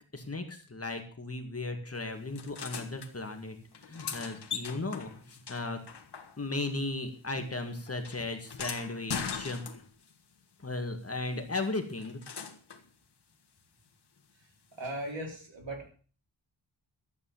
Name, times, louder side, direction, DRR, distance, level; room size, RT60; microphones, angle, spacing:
voice 1, 0.1-3.6 3.8-5.8 6.4-9.6 10.6-12.2, left 2 dB, 30° left, 5 dB, 2.0 m, -36 dB
sound 1, 2.4-3.1 3.7-6.7 7.0-10.1 11.6-12.9 14.8-14.9, left 6 dB, 55° left, 1.6 m, -41 dB
voice 2, 14.7-15.9, right 1 dB, 70° right, 1 dB, 4.1 m, -38 dB
12.5 x 8.3 x 7.1 m, 0.41 s
wide cardioid pair, 130°, 47 cm